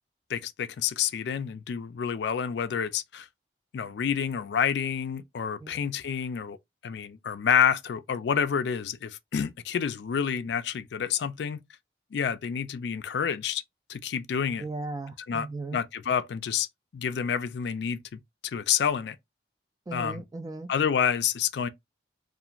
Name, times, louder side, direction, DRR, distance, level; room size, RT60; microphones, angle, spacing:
voice 1, 0.3-3.3 3.7-6.6 6.8-11.6 12.1-13.6 13.9-14.6 15.3-15.5 15.7-16.7 16.9-19.2 19.9-20.2 20.7-21.7, left 7 dB, 70° left, 0.3 m, -28 dB
voice 2, 14.6-15.8 19.9-20.7, right 3 dB, 20° right, 0.3 m, -37 dB
2.4 x 2.4 x 2.8 m
head